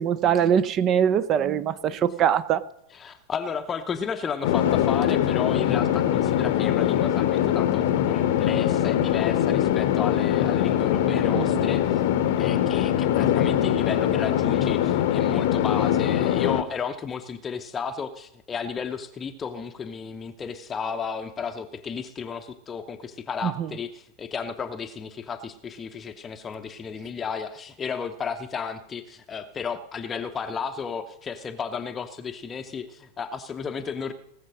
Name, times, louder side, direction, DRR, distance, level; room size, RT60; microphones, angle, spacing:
voice 1, 0.0-2.6 11.3-11.7 23.4-23.7, right 8 dB, 30° right, 16 dB, 0.6 m, -23 dB
voice 2, 2.9-12.0 12.4-34.1, left 6 dB, 20° left, 7 dB, 0.7 m, -33 dB
sound 1, 4.4-16.6, left 11 dB, 50° left, 0.8 m, -22 dB
18.0 x 7.3 x 6.3 m, 0.81 s
figure-of-eight pair, 90°, 0 cm